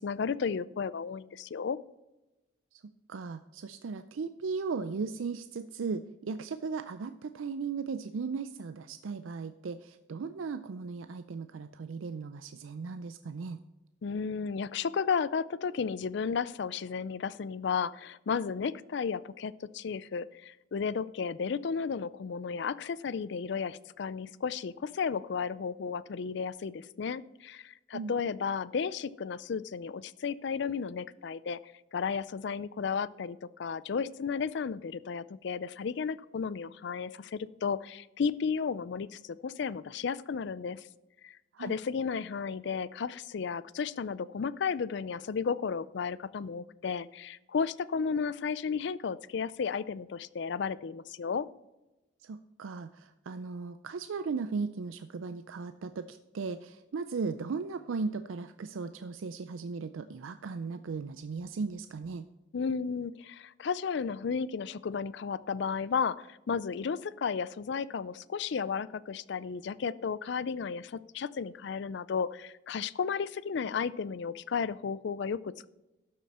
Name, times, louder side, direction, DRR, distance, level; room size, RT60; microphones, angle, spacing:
voice 1, 0.0-1.8 14.0-31.6 31.9-40.8 41.2-51.5 62.5-75.7, left 6 dB, 60° left, 18 dB, 0.4 m, -33 dB
voice 2, 3.1-13.6 27.9-28.1 41.5-41.8 52.2-62.3, right 4 dB, 85° right, 10 dB, 0.4 m, -37 dB
12.5 x 7.4 x 4.2 m, 1.0 s
head